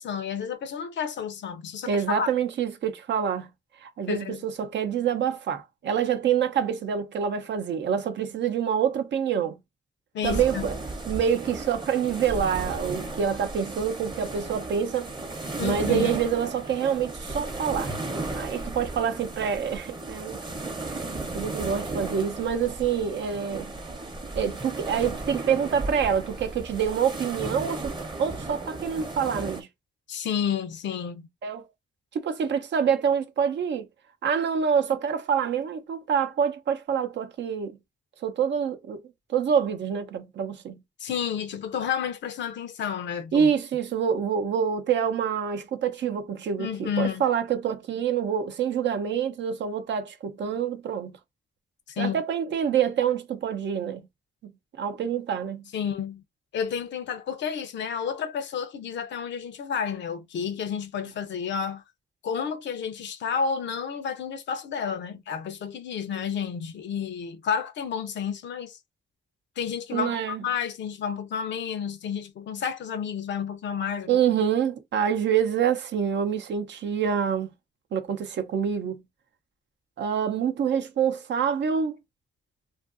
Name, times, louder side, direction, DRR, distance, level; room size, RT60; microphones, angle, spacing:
voice 1, 0.0-2.3 4.1-4.4 10.1-10.8 15.6-16.1 30.1-31.3 41.0-43.5 46.6-47.2 51.9-52.2 55.7-56.2 56.5-61.8 62.2-68.8 69.6-74.4, left 7 dB, 90° left, 0.5 m, -31 dB
voice 2, 1.9-3.5 3.8-9.6 10.2-10.8 11.1-15.1 15.6-17.9 18.3-20.4 21.3-23.7 24.4-27.9 28.2-29.7 31.4-31.6 32.1-33.9 34.2-37.8 38.2-39.0 39.3-40.8 43.3-51.2 52.0-54.1 54.8-55.6 69.9-70.4 74.1-77.5 77.9-79.0 80.0-82.0, right 7 dB, 85° right, 0.6 m, -26 dB
sound 1, 10.2-29.6, right 2 dB, 25° right, 0.7 m, -35 dB
2.6 x 2.4 x 2.4 m
cardioid pair, 85°, 18 cm